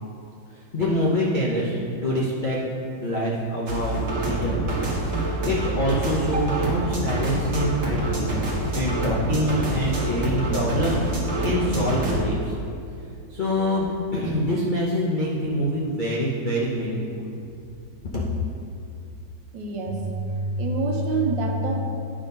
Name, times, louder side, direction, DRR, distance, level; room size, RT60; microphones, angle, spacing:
voice 1, 0.7-2.6 3.0-4.0 4.3-4.6 5.4-8.4 8.7-11.0 11.4-12.5 13.3-13.9 14.1-17.3 18.1-18.3, equal, 75° left, -5 dB, 0.4 m, -25 dB
sound 1, 3.7-12.2, right 1 dB, 40° right, 1.2 m, -26 dB
voice 2, 19.5-21.9, right 2 dB, 70° right, 1 dB, 1.5 m, -26 dB
9.5 x 3.7 x 5.3 m, 2.5 s
omnidirectional pair, 2.1 m